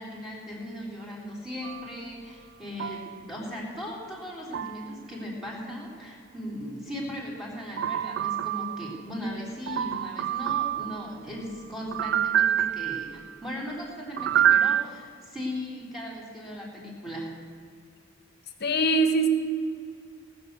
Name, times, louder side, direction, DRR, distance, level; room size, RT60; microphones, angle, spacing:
voice 1, 0.0-17.3, left 1 dB, ahead, -4 dB, 3.6 m, -38 dB
sound 1, 1.6-1.9 2.8-3.2 4.5-4.9 7.8-9.0 9.7-11.1 11.9-13.3 14.2-14.8, right 10 dB, 60° right, 0.3 m, -26 dB
voice 2, 18.6-19.3, right 2 dB, 55° left, 7 dB, 1.4 m, -22 dB
18.5 x 6.7 x 8.0 m, 2.4 s
head